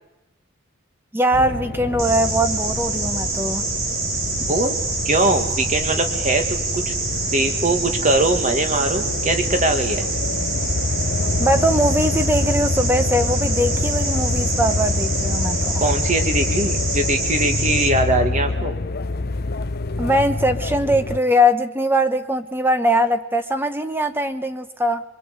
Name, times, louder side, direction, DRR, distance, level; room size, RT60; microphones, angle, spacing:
voice 1, 1.1-3.7 11.4-15.8 20.0-25.0, equal, 10° right, 10 dB, 1.0 m, -21 dB
sound 1, 1.3-21.2, left 3 dB, 45° left, 0.8 m, -26 dB
sound 2, 2.0-17.9, right 3 dB, 75° right, 3.8 m, -26 dB
voice 2, 5.1-6.9 7.3-10.0 15.8-18.7, right 2 dB, 35° right, 7 dB, 2.1 m, -21 dB
23.5 x 23.5 x 8.2 m, 0.93 s
head